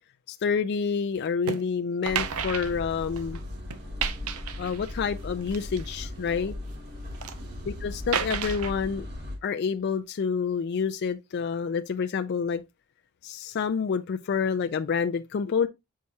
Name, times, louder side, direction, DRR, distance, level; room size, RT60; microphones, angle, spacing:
voice 1, 0.3-3.4 4.6-6.5 7.7-9.1 9.4-12.6 13.2-15.7, left 6 dB, 50° left, 0.4 m, -28 dB
sound 1, 1.5-1.6 2.0-3.4 3.7-5.0 5.5-6.5 7.0-7.4 8.1-8.7, right 7 dB, 85° right, 0.6 m, -32 dB
sound 2, 2.0-9.4, left 1 dB, 50° right, 2.5 m, -38 dB
7.3 x 4.7 x 2.8 m
head